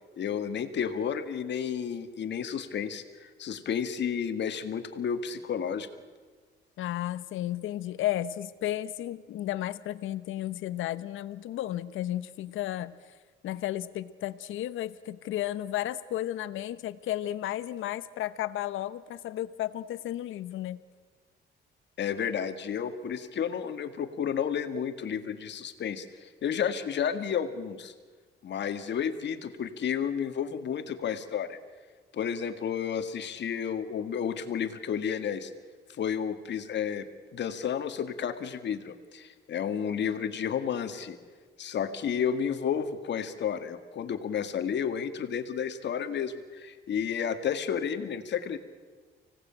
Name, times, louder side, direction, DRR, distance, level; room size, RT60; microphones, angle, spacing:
voice 1, 0.2-5.9 22.0-27.9 28.4-31.6 32.1-35.5 36.0-37.1 37.3-41.2 41.6-48.6, left 8 dB, 60° left, 9 dB, 1.9 m, -31 dB
voice 2, 6.8-12.9 13.4-20.8, left 13 dB, 85° left, 15 dB, 1.0 m, -33 dB
25.0 x 18.0 x 8.9 m, 1.5 s
cardioid pair, 90°, 20 cm